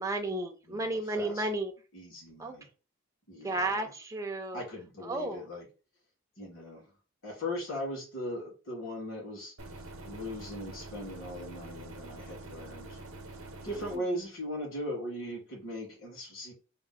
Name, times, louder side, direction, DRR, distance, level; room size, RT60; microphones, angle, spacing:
voice 1, 0.0-1.7 2.4-2.6 3.4-4.6 5.0-5.5, right 2 dB, 15° right, 0.4 m, -33 dB
voice 2, 0.7-1.5 1.9-2.7 3.3-3.9 4.5-5.7 6.4-6.9 7.2-9.5 10.0-13.0 13.6-16.5, left 1 dB, 70° left, 2.1 m, -39 dB
sound 1, 9.6-14.0, right 2 dB, 70° right, 0.7 m, -45 dB
3.6 x 2.0 x 4.0 m
head